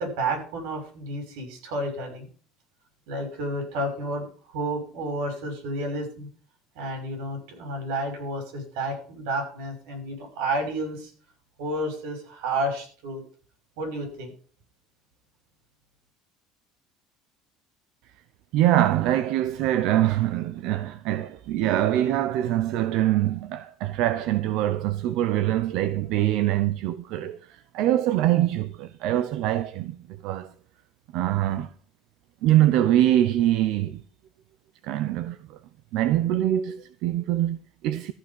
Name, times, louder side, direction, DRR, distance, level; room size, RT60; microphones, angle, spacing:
voice 1, 0.0-2.3 3.1-6.3 6.7-11.1 11.6-13.2 13.8-14.3, right 1 dB, 85° right, 6.3 m, -31 dB
voice 2, 18.5-30.5 31.1-31.7 32.4-34.0 34.8-35.6 35.9-38.1, right 13 dB, 60° right, 0.6 m, -24 dB
14.0 x 6.0 x 7.5 m
cardioid pair, 165°, 0 cm